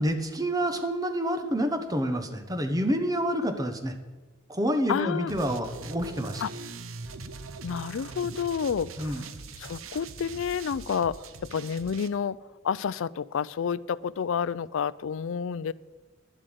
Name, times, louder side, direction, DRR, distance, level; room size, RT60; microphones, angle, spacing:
voice 1, 0.0-3.9 4.5-6.4 9.0-9.3, equal, 20° right, 7 dB, 1.0 m, -28 dB
voice 2, 4.9-5.3 6.4-6.5 7.6-9.3 9.6-11.2 11.5-12.4 12.6-15.7, left 7 dB, 70° left, 20 dB, 0.4 m, -29 dB
sound 1, 5.3-12.1, right 4 dB, 85° right, 0.8 m, -42 dB
11.5 x 7.5 x 7.9 m, 1.3 s
head